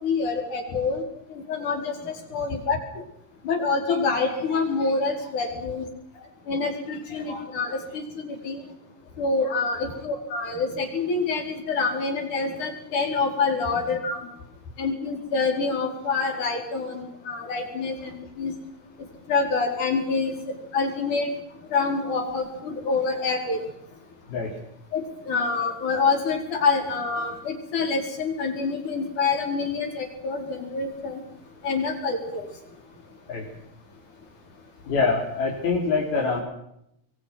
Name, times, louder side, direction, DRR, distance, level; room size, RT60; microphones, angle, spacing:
voice 1, 0.0-1.0 1.5-2.8 3.4-5.9 6.5-8.6 9.2-14.2 14.8-18.5 19.3-20.3 20.7-21.3 21.7-23.6 24.9-31.2 31.6-32.5, left 4 dB, 50° left, 2 dB, 6.2 m, -26 dB
voice 2, 34.9-36.4, left 4 dB, 70° left, -3 dB, 5.8 m, -24 dB
26.0 x 23.0 x 6.1 m, 0.78 s
omnidirectional pair, 4.5 m